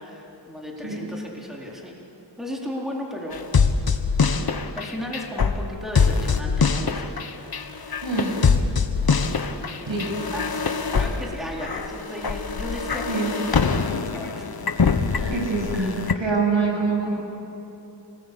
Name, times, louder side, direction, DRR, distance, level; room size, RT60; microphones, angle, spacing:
voice 1, 0.0-1.9 2.4-3.7 4.2-7.2 7.6-8.0 9.5-15.4 15.7-16.1, left 1 dB, ahead, -2 dB, 4.0 m, -36 dB
sound 1, 3.3-16.1, left 5 dB, 55° left, 1.4 m, -24 dB
voice 2, 15.3-15.9 16.2-17.1, right 4 dB, 80° right, -1 dB, 7.6 m, -24 dB
28.0 x 19.5 x 8.5 m, 2.9 s
wide cardioid pair, 90°, 45 cm